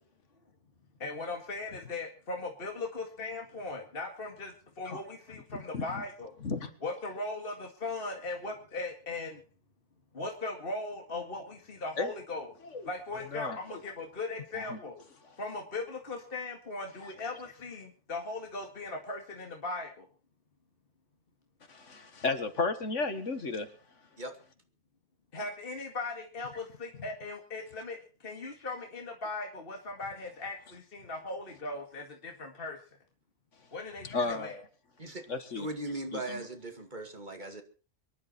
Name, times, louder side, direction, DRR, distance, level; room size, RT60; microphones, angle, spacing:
voice 1, 1.0-6.3 6.8-9.4 10.1-12.5 12.9-15.1 15.4-20.1 25.3-32.8 33.7-34.6, left 3 dB, 40° left, 3 dB, 2.2 m, -38 dB
voice 2, 5.5-6.0 6.4-6.7 12.0-12.1 12.7-12.9 13.3-13.8 14.6-14.8 21.7-23.7 34.0-34.6 35.3-35.7 36.1-36.5, left 3 dB, 55° left, 9 dB, 1.9 m, -34 dB
voice 3, 35.6-37.6, right 1 dB, 30° right, 5 dB, 2.4 m, -38 dB
24.5 x 11.0 x 4.3 m, 0.38 s
omnidirectional pair, 1.6 m